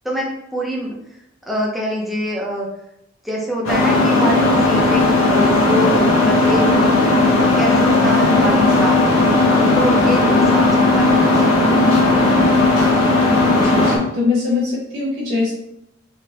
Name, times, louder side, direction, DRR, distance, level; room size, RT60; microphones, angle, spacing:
voice 1, 0.0-1.2 1.5-2.7 3.2-7.2 7.5-9.2 9.7-11.6, right 1 dB, ahead, -3 dB, 0.7 m, -25 dB
sound 1, 3.6-14.0, left 2 dB, 85° left, 1.0 m, -15 dB
voice 2, 13.5-15.5, left 4 dB, 65° right, -7 dB, 1.2 m, -22 dB
3.6 x 3.6 x 2.9 m, 0.80 s
head